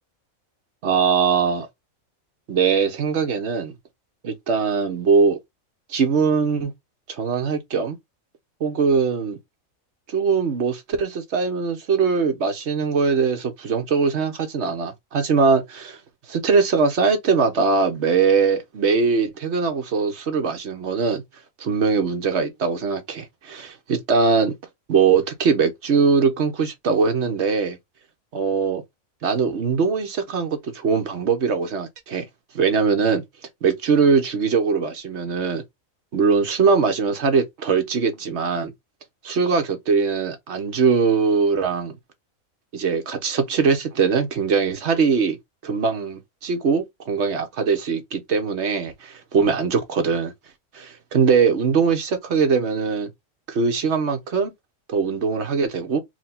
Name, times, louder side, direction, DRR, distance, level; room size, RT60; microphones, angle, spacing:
voice 1, 0.8-1.7 2.5-3.7 4.2-5.4 5.9-6.7 7.1-8.0 8.6-9.4 10.1-16.0 16.3-21.2 21.6-24.5 24.9-27.8 28.3-28.8 29.2-32.2 32.5-33.2 33.6-35.6 36.1-38.7 39.2-42.0 42.7-45.4 45.6-50.3 50.7-53.1 53.5-54.5 54.9-56.0, right 5 dB, 55° right, 1.2 m, -21 dB
4.6 x 2.2 x 4.2 m
omnidirectional pair, 1.5 m